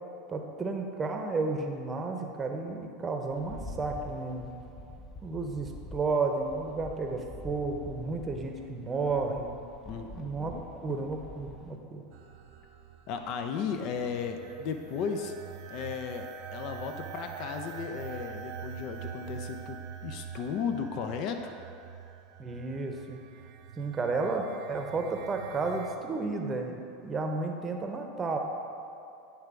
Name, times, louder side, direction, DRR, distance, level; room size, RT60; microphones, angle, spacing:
voice 1, 0.3-4.5 5.2-9.6 10.2-10.5 10.8-12.0 22.4-23.2 23.8-28.4, right 3 dB, 25° right, 3 dB, 0.8 m, -32 dB
Rattle, 3.3-11.8, left 1 dB, 20° left, 0.9 m, -46 dB
voice 2, 9.9-10.6 13.1-15.3 15.7-21.5, left 6 dB, 55° left, 5 dB, 0.6 m, -35 dB
sound 1, 12.1-26.0, right 9 dB, 60° right, 0.5 m, -45 dB
8.8 x 3.4 x 4.9 m, 2.6 s
hypercardioid pair, 85°, 0 cm